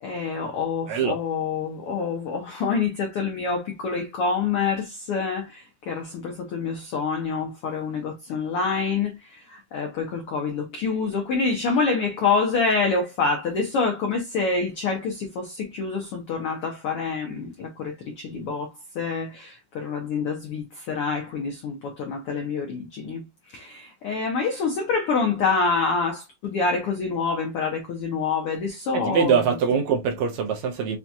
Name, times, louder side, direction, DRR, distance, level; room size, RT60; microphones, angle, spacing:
voice 1, 0.0-29.5, left 4 dB, 85° left, 1.2 m, -27 dB
voice 2, 0.9-1.2 28.9-31.0, right 6 dB, 80° right, 1.7 m, -23 dB
5.7 x 2.4 x 2.6 m
omnidirectional pair, 3.7 m